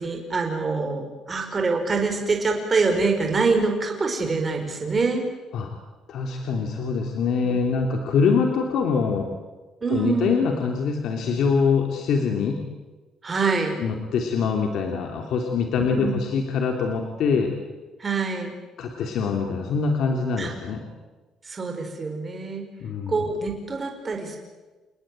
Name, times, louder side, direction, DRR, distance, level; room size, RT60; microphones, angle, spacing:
voice 1, 0.0-5.2 7.4-7.6 9.8-10.3 13.2-13.8 15.9-16.2 18.0-18.5 20.4-20.5 21.4-22.7 23.1-24.4, right 4 dB, 20° right, 3 dB, 4.8 m, -25 dB
voice 2, 6.1-9.3 9.9-12.6 13.8-17.5 18.8-20.8 22.8-23.2, left 5 dB, 55° left, 3 dB, 3.2 m, -24 dB
29.5 x 20.0 x 9.1 m, 1.2 s
cardioid pair, 165°, 0 cm